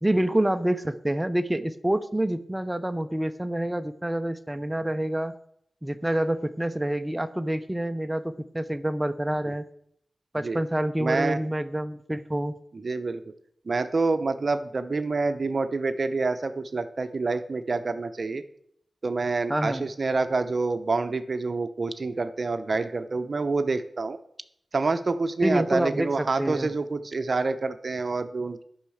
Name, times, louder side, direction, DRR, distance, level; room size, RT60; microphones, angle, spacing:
voice 1, 0.0-5.3 5.8-9.6 10.3-12.5 19.5-19.9 25.4-26.7, right 1 dB, 15° right, 9 dB, 0.6 m, -27 dB
voice 2, 11.0-11.4 12.7-13.2 13.7-18.4 19.0-24.2 24.7-28.6, right 3 dB, 55° right, 10 dB, 0.7 m, -27 dB
10.5 x 5.6 x 6.4 m, 0.69 s
cardioid pair, 65°, 0 cm